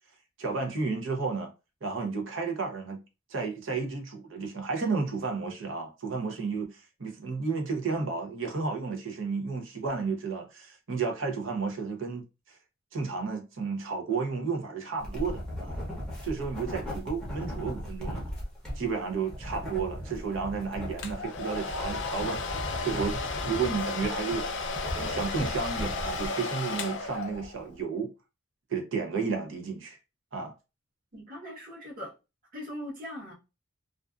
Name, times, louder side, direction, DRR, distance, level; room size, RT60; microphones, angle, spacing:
voice 1, 0.4-1.5 1.8-3.0 3.3-12.6 12.9-15.8 16.2-18.3 18.7-24.5 25.0-28.1 28.7-30.0 30.3-30.5, right 4 dB, 65° right, 0.7 m, -32 dB
sound 1, 15.0-26.3, equal, 5° left, 0.7 m, -37 dB
Domestic sounds home sounds, 21.0-27.7, left 4 dB, 60° left, 0.4 m, -34 dB
voice 2, 31.1-32.1 32.5-33.3, equal, 40° right, 1.0 m, -40 dB
2.5 x 2.3 x 2.3 m
head